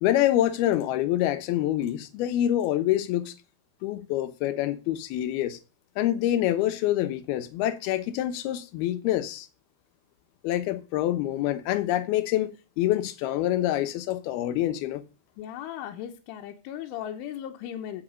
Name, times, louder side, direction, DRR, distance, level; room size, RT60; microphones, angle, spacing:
voice 1, 0.0-3.3 3.8-5.6 6.0-9.5 10.4-15.0, left 13 dB, 70° left, 2.6 m, -26 dB
voice 2, 15.4-18.0, left 10 dB, 85° left, 3.6 m, -37 dB
15.0 x 6.0 x 6.6 m
omnidirectional pair, 5.4 m